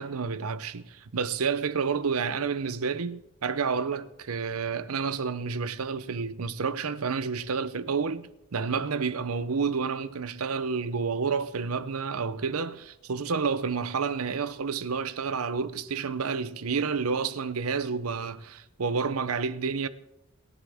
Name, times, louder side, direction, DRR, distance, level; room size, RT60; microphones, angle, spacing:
voice 1, 0.0-19.9, right 5 dB, 90° right, 0.7 m, -30 dB
28.0 x 10.5 x 3.5 m
head